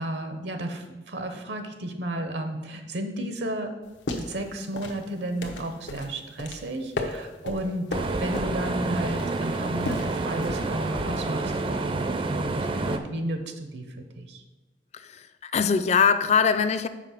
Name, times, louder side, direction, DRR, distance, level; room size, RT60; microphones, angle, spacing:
voice 1, 0.0-3.7 4.2-7.9 8.2-14.4, right 1 dB, 75° right, 7 dB, 0.7 m, -33 dB
sound 1, 3.8-11.3, left 2 dB, 90° left, 0.9 m, -36 dB
sound 2, 7.9-13.0, right 3 dB, 30° right, 0.4 m, -29 dB
voice 2, 14.9-16.9, left 6 dB, 40° left, 12 dB, 0.4 m, -22 dB
5.8 x 4.8 x 5.8 m, 1.1 s
head